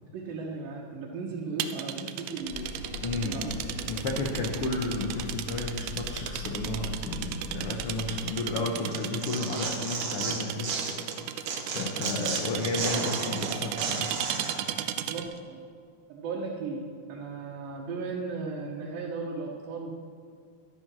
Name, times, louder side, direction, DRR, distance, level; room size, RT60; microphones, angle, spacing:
voice 1, 0.0-3.9 15.1-15.6 16.1-19.9, right 4 dB, 75° right, -4 dB, 2.9 m, -36 dB
sound 1, 1.6-15.4, right 11 dB, 90° right, 1.8 m, -35 dB
sound 2, 2.5-8.2, left 1 dB, 10° left, 3.8 m, -40 dB
voice 2, 3.0-3.5 3.9-10.7 11.6-14.1, left 3 dB, 85° left, 1 dB, 1.2 m, -32 dB
Tearing, 8.9-11.2 11.5-14.6, right 4 dB, 55° right, 1.7 m, -33 dB
12.5 x 10.5 x 6.2 m, 2.2 s
omnidirectional pair, 4.2 m